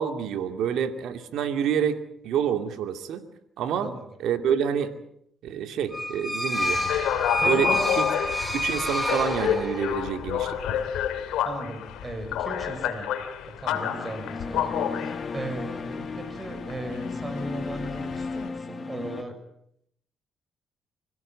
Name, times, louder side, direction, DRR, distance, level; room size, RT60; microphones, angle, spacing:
voice 1, 0.0-3.2 3.6-3.9 4.2-4.9 5.4-6.8 7.5-10.8, right 8 dB, 80° right, 7 dB, 2.5 m, -28 dB
sound 1, 5.9-10.0, left 1 dB, ahead, 6.1 m, -28 dB
sound 2, 6.6-18.5, left 10 dB, 85° left, 2.9 m, -30 dB
voice 2, 7.4-7.9 11.4-13.1 13.4-19.4, right 1 dB, 25° right, 8 dB, 6.3 m, -36 dB
sound 3, 13.7-19.2, left 4 dB, 35° left, 1.3 m, -35 dB
26.0 x 17.0 x 8.8 m, 0.72 s
cardioid pair, 90°, 0 cm